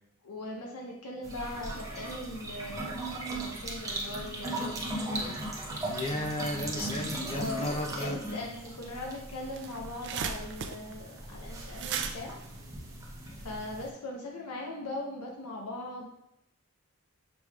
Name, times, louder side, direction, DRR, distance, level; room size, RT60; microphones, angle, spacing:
voice 1, 0.2-4.9 7.3-12.4 13.4-16.1, left 1 dB, 85° left, 0 dB, 0.7 m, -40 dB
sound 1, 1.2-13.9, right 1 dB, 15° right, 0.6 m, -38 dB
voice 2, 5.9-8.2, left 1 dB, 25° left, 2 dB, 0.5 m, -34 dB
sound 2, 9.0-9.1 9.3-13.6, right 7 dB, 55° right, 0.3 m, -38 dB
6.1 x 3.3 x 2.3 m, 0.83 s
head